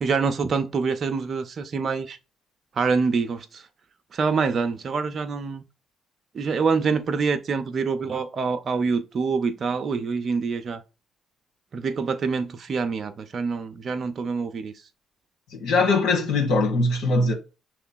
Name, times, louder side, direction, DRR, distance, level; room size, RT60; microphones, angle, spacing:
voice 1, 0.0-2.2 2.8-3.6 4.1-5.6 6.3-10.8 11.7-14.7, right 5 dB, 55° right, 0.5 m, -26 dB
voice 2, 15.5-17.3, left 3 dB, 80° left, 1.3 m, -21 dB
5.8 x 3.0 x 2.2 m
hypercardioid pair, 50°, 0 cm